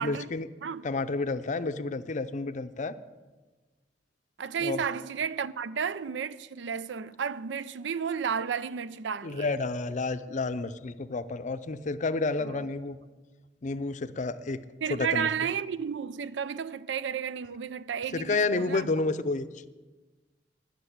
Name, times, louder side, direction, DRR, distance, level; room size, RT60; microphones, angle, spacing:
voice 1, 0.0-0.5 0.8-2.9 4.6-4.8 9.2-13.0 13.6-14.6 14.9-15.3 18.1-19.7, left 3 dB, 45° left, 0.5 m, -30 dB
voice 2, 4.4-9.5 12.4-12.7 14.8-18.9, right 7 dB, 85° right, 0.4 m, -32 dB
11.0 x 6.8 x 9.3 m
head